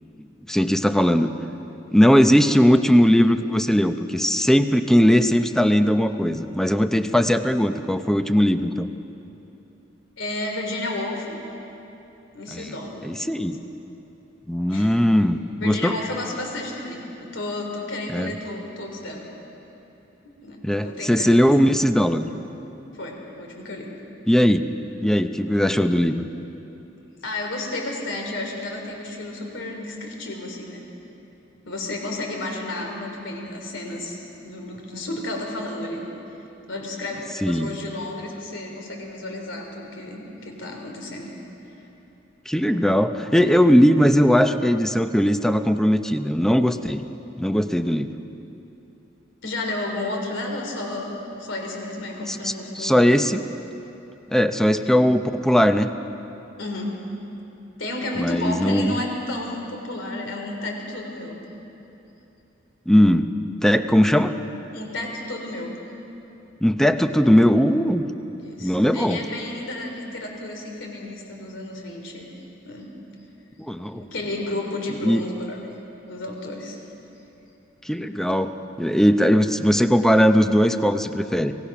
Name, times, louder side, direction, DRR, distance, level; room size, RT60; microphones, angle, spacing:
voice 1, 0.5-1.3 1.9-8.9 12.5-12.7 13.0-13.6 14.5-16.0 18.1-18.3 20.6-22.3 24.3-24.6 25.0-26.3 37.4-37.7 42.5-47.0 47.4-48.1 52.3-53.4 54.3-55.9 58.2-59.0 62.9-63.3 63.6-64.3 66.6-68.0 68.6-69.2 73.6-74.0 75.0-75.2 77.8-81.5, equal, 5° left, 8 dB, 0.6 m, -19 dB
voice 2, 10.2-11.4 12.3-13.1 14.7-15.0 15.6-17.0 17.3-19.3 20.4-21.6 23.0-23.9 27.2-30.8 31.6-36.0 36.7-41.3 49.4-51.1 51.4-53.3 56.6-57.0 57.8-61.4 64.7-65.7 68.4-72.3 72.6-72.9 73.9-75.7 76.1-76.8, left 2 dB, 75° left, 1 dB, 3.3 m, -32 dB
25.0 x 17.5 x 6.0 m, 3.0 s
head